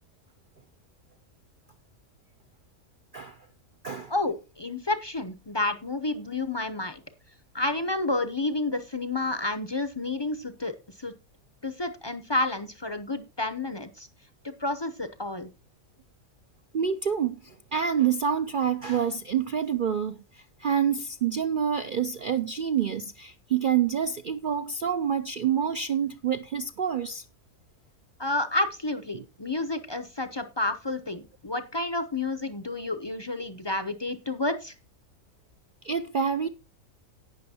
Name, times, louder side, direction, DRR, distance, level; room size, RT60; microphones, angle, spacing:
voice 1, 4.1-7.0 7.5-11.1 11.6-14.1 14.4-15.5 28.2-34.7, left 2 dB, 30° left, 0.5 m, -30 dB
voice 2, 16.7-27.2 29.1-29.2 35.8-36.5, right 8 dB, 65° right, 0.5 m, -27 dB
18.0 x 6.2 x 2.8 m
omnidirectional pair, 1.5 m